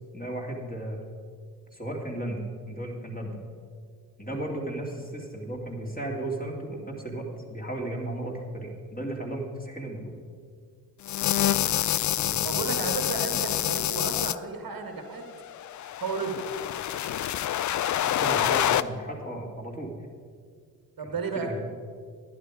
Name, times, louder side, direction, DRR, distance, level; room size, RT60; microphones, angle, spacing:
voice 1, 0.1-1.0 1.7-3.4 4.2-10.1 12.1-12.5 18.0-19.9 21.0-21.6, right 1 dB, 20° left, -1 dB, 2.8 m, -35 dB
sound 1, 11.0-14.4 15.5-18.8, left 12 dB, 45° left, 0.4 m, -27 dB
voice 2, 12.4-15.2 16.0-16.5 18.2-18.9 21.0-21.5, right 4 dB, 50° right, 4 dB, 1.7 m, -33 dB
11.0 x 10.5 x 5.0 m, 2.1 s
hypercardioid pair, 45°, 46 cm